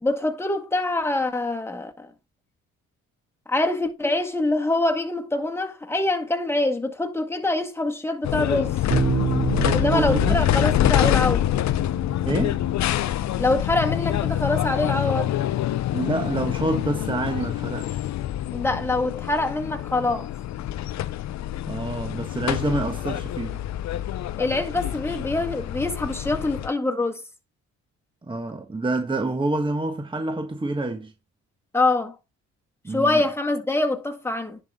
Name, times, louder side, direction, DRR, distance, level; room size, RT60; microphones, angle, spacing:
voice 1, 0.0-2.1 3.5-8.8 9.7-11.4 13.4-15.3 18.5-20.3 24.4-27.2 31.7-32.2 32.9-34.6, left 2 dB, 10° left, 1.7 m, -24 dB
sound 1, 8.2-26.7, left 12 dB, 65° left, 0.7 m, -26 dB
Bass guitar, 8.9-12.6, right 7 dB, 45° right, 6.4 m, -28 dB
voice 2, 9.6-10.4 12.2-12.6 15.9-18.0 21.7-23.6 28.3-31.1 32.8-33.2, right 2 dB, 15° right, 1.4 m, -27 dB
10.5 x 5.6 x 3.7 m
cardioid pair, 90°, 30 cm